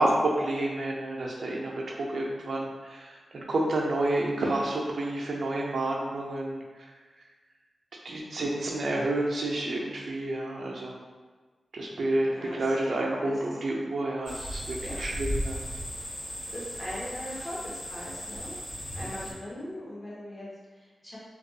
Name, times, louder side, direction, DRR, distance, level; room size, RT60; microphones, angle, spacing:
voice 1, 0.0-6.8 8.0-11.0 11.7-15.6, right 1 dB, 70° right, -3 dB, 0.4 m, -29 dB
voice 2, 12.3-12.7 13.2-13.4 14.8-15.3 16.5-18.6 18.9-21.2, left 1 dB, 15° left, -7 dB, 0.9 m, -40 dB
sound 1, 14.2-19.3, equal, 60° left, 1.2 m, -36 dB
2.5 x 2.3 x 2.6 m, 1.4 s
cardioid pair, 75°, 0 cm